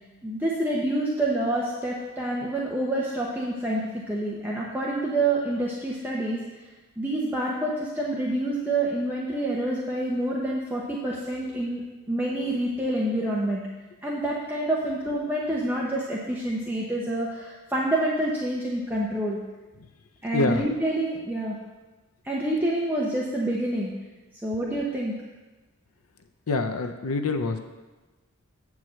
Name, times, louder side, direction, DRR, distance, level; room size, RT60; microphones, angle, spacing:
voice 1, 0.2-6.4 7.0-11.8 12.1-13.6 14.0-19.4 20.2-21.6 22.2-23.9 24.4-25.1, right 1 dB, 10° right, -5 dB, 0.9 m, -27 dB
voice 2, 20.3-20.7 26.5-27.6, left 3 dB, 85° left, 7 dB, 0.6 m, -26 dB
8.2 x 4.7 x 7.4 m, 1.2 s
head